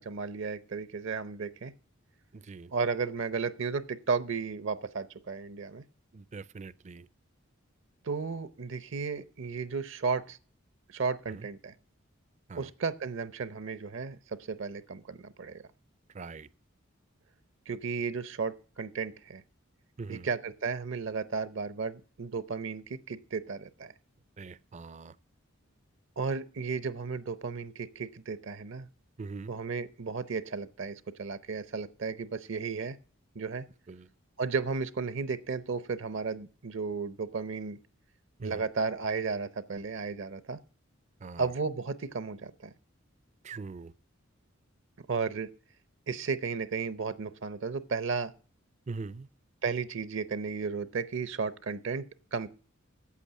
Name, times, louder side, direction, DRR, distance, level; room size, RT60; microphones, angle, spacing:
voice 1, 0.0-1.7 2.7-5.8 8.0-10.4 10.9-11.7 12.6-15.6 17.7-19.4 20.1-23.9 26.2-28.9 29.5-33.0 33.3-33.7 34.4-37.8 38.4-40.6 41.4-42.7 45.0-45.5 46.1-48.3 49.6-52.5, right 5 dB, 65° right, 0.7 m, -34 dB
voice 2, 2.3-2.7 6.1-7.1 11.3-11.5 12.5-12.7 16.1-16.5 20.0-20.3 24.4-25.2 29.2-29.5 33.9-34.1 38.4-38.7 41.2-41.5 43.4-43.9 48.9-49.3, right 4 dB, 35° right, 0.4 m, -42 dB
8.5 x 8.4 x 7.4 m
head